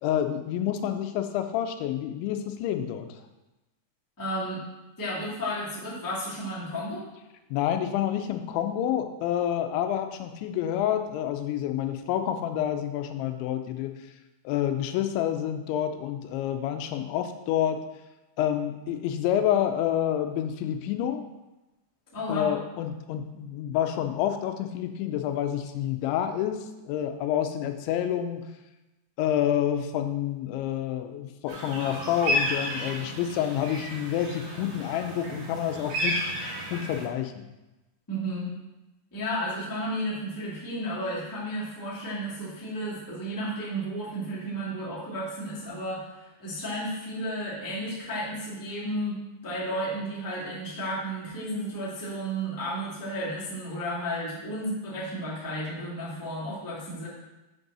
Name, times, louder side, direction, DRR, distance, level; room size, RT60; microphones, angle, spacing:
voice 1, 0.0-3.1 7.5-13.9 14.4-17.8 18.4-21.2 22.3-28.5 29.2-36.2 36.7-37.5, left 10 dB, 90° left, 7 dB, 3.1 m, -28 dB
voice 2, 4.2-4.6 5.0-7.0 22.1-22.5 38.1-38.5 39.1-49.2 49.4-57.1, equal, 15° left, -8 dB, 0.8 m, -33 dB
sound 1, 31.5-37.1, equal, 55° right, 3.2 m, -32 dB
7.6 x 5.3 x 6.1 m, 1.0 s
omnidirectional pair, 5.1 m